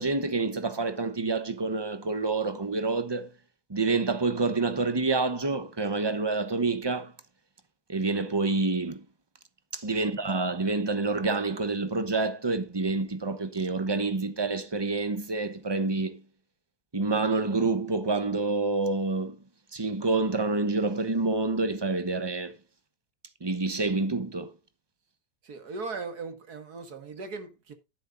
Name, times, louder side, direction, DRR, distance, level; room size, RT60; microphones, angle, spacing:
voice 1, 0.0-3.3 3.7-7.1 7.9-9.0 9.7-16.2 16.9-19.4 19.7-22.5 23.4-24.5, right 3 dB, 20° right, 0.8 m, -28 dB
voice 2, 25.4-27.7, right 4 dB, 60° right, 2.3 m, -39 dB
11.5 x 10.0 x 2.6 m
omnidirectional pair, 1.9 m